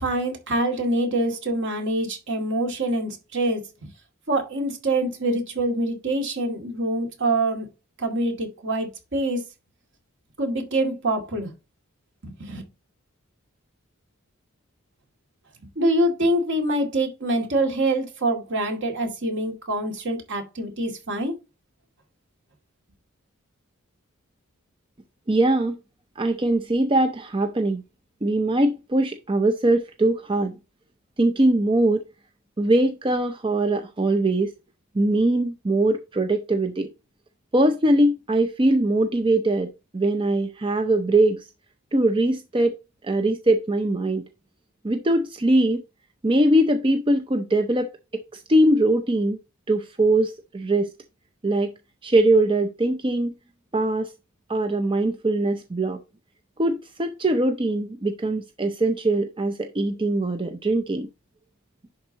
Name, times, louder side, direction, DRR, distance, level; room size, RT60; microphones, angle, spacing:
voice 1, 0.0-3.9 4.3-7.7 8.0-9.4 10.4-11.5 12.2-12.6 15.8-21.3, right 1 dB, 55° right, 2.2 m, -25 dB
voice 2, 25.3-25.8 26.2-27.8 28.2-30.5 31.2-32.0 32.6-34.5 34.9-36.9 37.5-41.4 41.9-42.7 43.0-44.3 44.8-45.8 46.2-49.4 49.7-50.9 51.4-51.7 52.0-53.3 53.7-54.1 54.5-56.0 56.6-61.1, right 1 dB, 25° right, 0.5 m, -22 dB
10.5 x 4.2 x 2.8 m
head